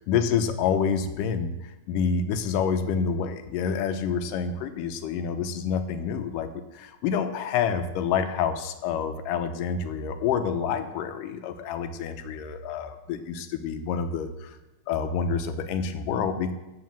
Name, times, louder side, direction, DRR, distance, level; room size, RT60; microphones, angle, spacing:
voice 1, 0.0-1.5 1.9-6.5 6.8-14.6 14.9-16.5, left 6 dB, 85° left, 8 dB, 2.4 m, -28 dB
12.5 x 4.9 x 7.4 m, 0.99 s
omnidirectional pair, 3.7 m